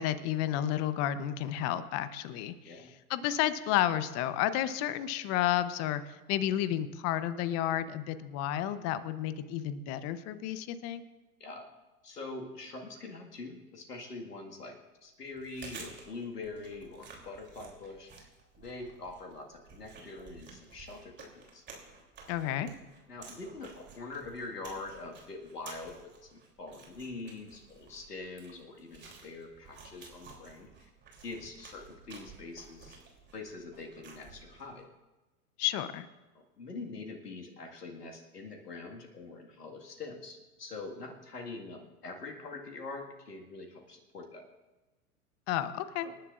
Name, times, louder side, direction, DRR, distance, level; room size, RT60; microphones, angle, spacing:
voice 1, 0.0-2.8 3.1-11.0 22.3-22.7 35.6-36.1 45.5-46.1, left 12 dB, 35° left, 13 dB, 0.9 m, -31 dB
voice 2, 12.0-18.3 18.6-21.7 23.1-30.9 31.2-33.0 33.3-34.9 36.3-44.5 46.0-46.1, left 3 dB, 85° left, 2 dB, 2.0 m, -44 dB
Chewing mastication, 15.3-34.8, right 4 dB, 25° right, 3.2 m, -53 dB
26.5 x 11.0 x 2.5 m, 1.1 s
hypercardioid pair, 105°, 46 cm